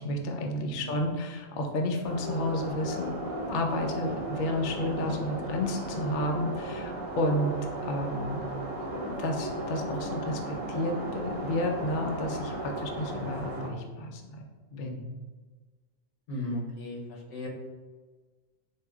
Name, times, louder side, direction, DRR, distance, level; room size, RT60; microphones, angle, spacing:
voice 1, 0.0-7.6 7.8-8.5 8.9-14.4 14.7-15.1, left 1 dB, 60° left, 2 dB, 0.5 m, -31 dB
sound 1, 2.0-13.7, right 1 dB, 85° right, 1.2 m, -35 dB
voice 2, 16.3-17.5, left 1 dB, 85° left, -1 dB, 1.2 m, -36 dB
4.6 x 2.7 x 2.3 m, 1.4 s
omnidirectional pair, 1.4 m